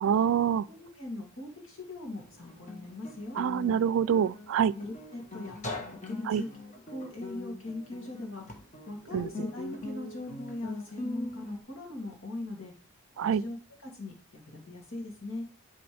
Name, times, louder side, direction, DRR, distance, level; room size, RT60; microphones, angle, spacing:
voice 1, 0.0-0.7 3.4-4.7 6.3-6.4 9.1-9.3 13.2-13.4, right 8 dB, 75° right, 0.3 m, -26 dB
voice 2, 0.7-3.4 4.6-6.5 6.9-8.4 8.9-12.7 13.2-13.6 13.8-15.5, left 2 dB, 75° left, 2.7 m, -40 dB
Guitar, 2.2-11.6, left 2 dB, 35° left, 1.4 m, -41 dB
11.5 x 4.2 x 3.4 m
head